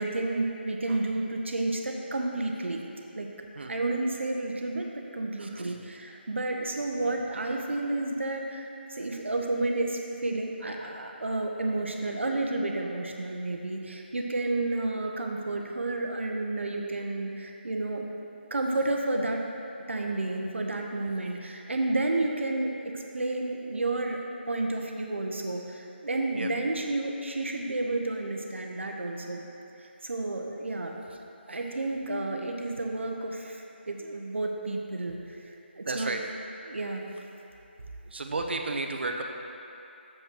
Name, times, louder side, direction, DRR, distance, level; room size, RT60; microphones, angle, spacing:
voice 1, 0.0-2.8 3.1-3.3 3.7-18.1 18.5-19.4 19.9-24.2 24.5-29.4 29.8-31.0 31.5-36.2 36.7-37.0, right 2 dB, 90° right, 1 dB, 1.1 m, -31 dB
voice 2, 35.9-36.2 38.1-39.2, right 3 dB, 65° right, 3 dB, 0.9 m, -32 dB
7.2 x 5.6 x 6.1 m, 2.8 s
figure-of-eight pair, 170°, 6 cm